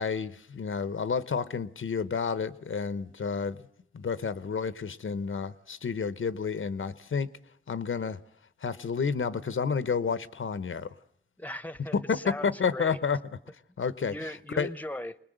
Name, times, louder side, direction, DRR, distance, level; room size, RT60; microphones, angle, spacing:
voice 1, 0.0-3.6 3.9-7.3 7.7-8.2 8.6-10.9 11.9-13.2 13.8-14.1 14.6-14.7, left 5 dB, 90° left, 0.9 m, -30 dB
voice 2, 11.4-13.0 14.1-15.2, left 1 dB, 10° left, 0.8 m, -38 dB
25.0 x 20.0 x 7.9 m
wide cardioid pair, 80°, 20 cm